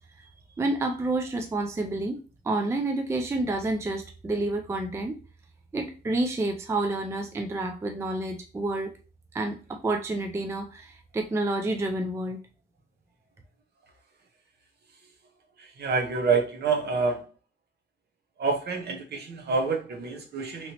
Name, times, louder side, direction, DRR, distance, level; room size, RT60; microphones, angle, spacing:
voice 1, 0.6-5.2 5.7-8.9 9.3-12.4, right 2 dB, 15° right, 4 dB, 0.3 m, -29 dB
voice 2, 15.6-17.3 18.4-20.7, right 4 dB, 55° right, 3 dB, 0.7 m, -27 dB
3.0 x 2.8 x 2.8 m, 0.34 s
wide cardioid pair, 155°, 20 cm